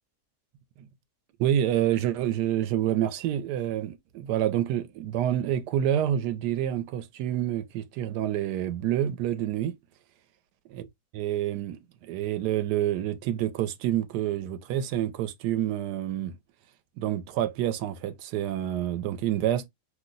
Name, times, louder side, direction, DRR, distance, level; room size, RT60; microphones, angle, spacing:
voice 1, 1.4-9.7 10.7-10.8 11.1-16.3 17.0-19.7, right 11 dB, 90° right, 1.2 m, -28 dB
2.9 x 2.1 x 3.7 m
omnidirectional pair, 1.7 m